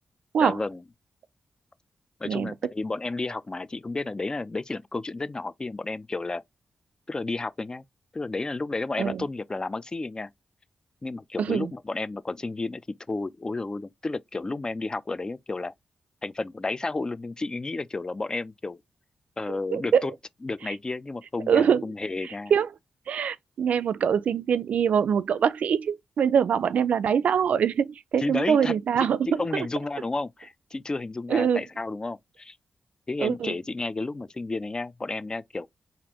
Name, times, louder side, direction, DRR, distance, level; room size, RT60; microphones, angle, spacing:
voice 1, 0.4-0.8 2.2-6.4 7.1-7.8 8.1-10.3 11.0-12.8 13.1-15.7 16.2-18.8 19.4-20.1 20.4-22.5 28.2-32.6 33.1-35.7, left 3 dB, 35° left, 0.4 m, -32 dB
voice 2, 11.4-11.7 19.7-20.1 21.5-21.8 22.5-22.7 23.1-29.2 29.5-29.7 31.3-31.6 33.2-33.5, right 7 dB, 75° right, 0.3 m, -23 dB
4.2 x 2.5 x 2.9 m
cardioid pair, 45°, 2 cm